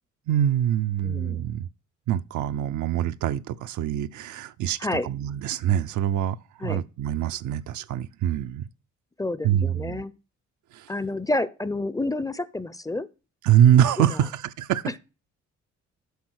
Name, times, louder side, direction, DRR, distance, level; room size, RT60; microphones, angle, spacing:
voice 1, 0.3-1.7 2.1-6.4 6.6-8.6 9.4-10.0 10.7-10.9 13.4-15.0, right 10 dB, 75° right, 0.6 m, -24 dB
voice 2, 1.0-1.4 4.8-5.1 6.6-6.8 9.2-10.2 10.9-13.1 14.0-14.2 14.9-15.0, left 2 dB, 10° left, 0.6 m, -29 dB
8.3 x 5.6 x 6.3 m
cardioid pair, 90°, 30 cm